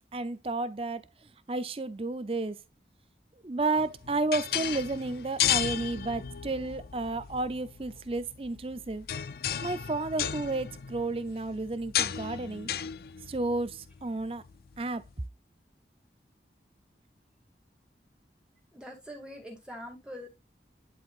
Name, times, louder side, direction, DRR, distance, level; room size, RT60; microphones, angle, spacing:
voice 1, 0.1-1.1 1.5-2.6 3.4-9.1 9.6-12.7 13.3-14.4 14.8-15.0, right 2 dB, 30° right, 0.5 m, -32 dB
sound 1, 3.8-15.1, left 10 dB, 55° left, 0.4 m, -35 dB
voice 2, 18.7-20.3, equal, 5° right, 2.0 m, -43 dB
10.5 x 4.5 x 2.4 m
head